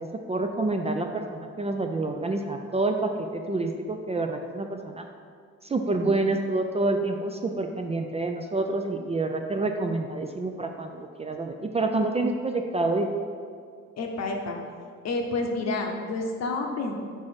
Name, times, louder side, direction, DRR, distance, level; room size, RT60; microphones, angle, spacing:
voice 1, 0.0-5.0 5.6-13.1, right 2 dB, 20° right, 4 dB, 0.4 m, -28 dB
voice 2, 13.9-14.6 15.0-16.9, left 3 dB, 60° left, 2 dB, 0.9 m, -29 dB
4.7 x 4.7 x 4.4 m, 2.1 s
cardioid pair, 90°, 30 cm